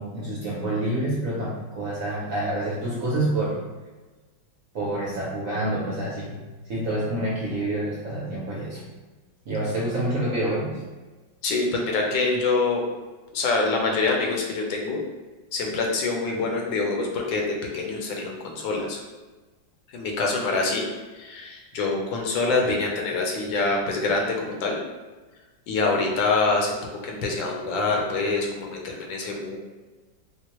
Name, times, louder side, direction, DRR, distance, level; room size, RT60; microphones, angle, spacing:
voice 1, 0.0-3.6 4.7-6.4 6.7-8.9 9.4-10.8, right 1 dB, 60° right, -6 dB, 0.9 m, -27 dB
voice 2, 11.4-12.8 13.3-15.0 15.5-19.0 19.9-20.8 21.1-24.8 25.7-29.6, left 3 dB, 80° left, 0 dB, 1.4 m, -25 dB
4.4 x 2.1 x 2.9 m, 1.2 s
omnidirectional pair, 2.1 m